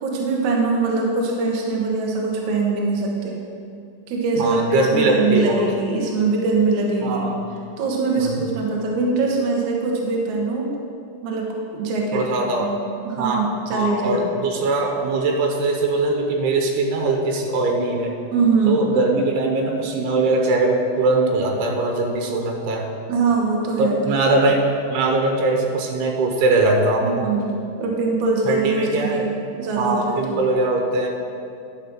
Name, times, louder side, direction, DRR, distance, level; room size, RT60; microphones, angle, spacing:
voice 1, 0.0-3.4 4.1-7.3 7.8-10.7 11.2-12.3 12.6-12.8 13.0-14.3 18.3-18.8 23.1-24.1 27.0-30.4, right 3 dB, 70° right, -1 dB, 1.9 m, -22 dB
voice 2, 4.4-5.6 7.0-7.5 8.2-8.4 12.1-12.7 13.2-18.2 18.7-22.9 23.8-24.6 24.9-27.3 28.5-29.3 29.8-31.1, right 2 dB, 90° right, 2 dB, 3.0 m, -21 dB
11.0 x 4.9 x 6.1 m, 2.5 s
omnidirectional pair, 4.5 m